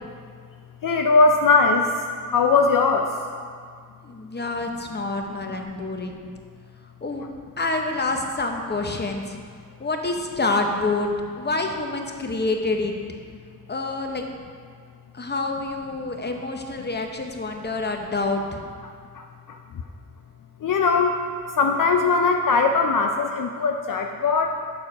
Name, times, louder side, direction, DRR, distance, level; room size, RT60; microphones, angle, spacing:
voice 1, 0.8-1.9 2.3-3.1 20.6-21.2 21.6-24.6, left 4 dB, 65° left, 4 dB, 0.5 m, -19 dB
voice 2, 4.0-6.2 7.0-7.3 7.6-9.4 9.8-11.1 11.4-12.9 13.7-14.2 15.1-18.6, left 2 dB, 30° left, 3 dB, 0.7 m, -27 dB
6.8 x 4.5 x 4.7 m, 2.1 s
wide cardioid pair, 55°, 35 cm